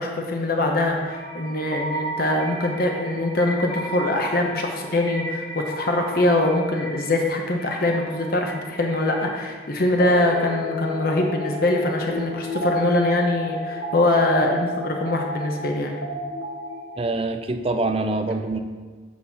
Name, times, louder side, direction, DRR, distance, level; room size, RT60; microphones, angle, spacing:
voice 1, 0.0-16.0, left 1 dB, 55° left, 2 dB, 0.9 m, -23 dB
sound 1, 1.0-17.2, equal, 80° left, 1.4 m, -32 dB
voice 2, 17.0-18.6, right 2 dB, 30° right, 7 dB, 0.5 m, -25 dB
8.4 x 4.1 x 5.6 m, 1.4 s
head